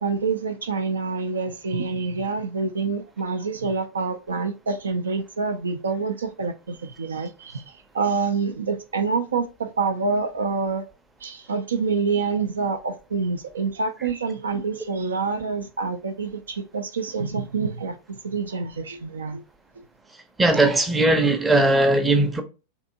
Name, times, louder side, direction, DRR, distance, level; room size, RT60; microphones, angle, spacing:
voice 1, 0.0-10.8 11.2-19.4, right 4 dB, 70° right, 0.4 m, -27 dB
voice 2, 20.4-22.4, right 2 dB, 10° right, 0.6 m, -19 dB
3.4 x 2.7 x 2.6 m
figure-of-eight pair, 90°, 0 cm